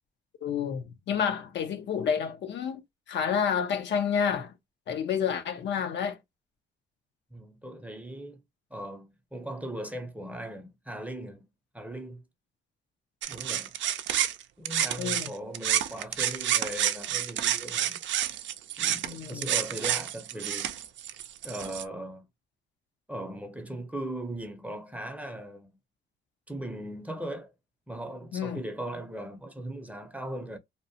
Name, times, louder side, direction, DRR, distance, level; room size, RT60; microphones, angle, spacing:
voice 1, 0.4-2.8 3.1-4.6 4.9-6.2 15.0-15.3 19.0-19.5 28.3-28.6, left 7 dB, 65° left, 0.5 m, -29 dB
voice 2, 7.3-8.4 8.7-11.4 11.7-12.2 13.3-13.8 14.6-18.0 18.8-20.7 21.4-22.3 23.1-25.7 26.5-27.5 27.9-30.6, right 1 dB, 5° right, 0.6 m, -38 dB
sound 1, 13.2-15.3 15.5-21.8, right 11 dB, 70° right, 0.4 m, -29 dB
2.8 x 2.0 x 2.7 m
cardioid pair, 90°, 20 cm